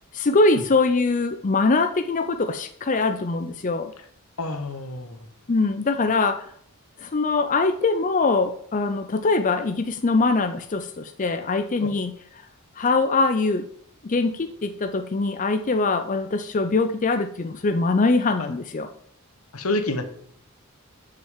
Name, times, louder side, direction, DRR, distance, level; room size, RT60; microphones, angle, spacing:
voice 1, 0.1-3.9 5.5-6.5 7.0-12.1 12.8-13.7 14.0-18.9, left 3 dB, 35° left, 8 dB, 0.5 m, -22 dB
voice 2, 4.4-5.2 11.8-11.9 18.4-18.5 19.5-20.0, left 2 dB, 85° left, 8 dB, 1.3 m, -28 dB
6.6 x 5.8 x 7.3 m, 0.65 s
head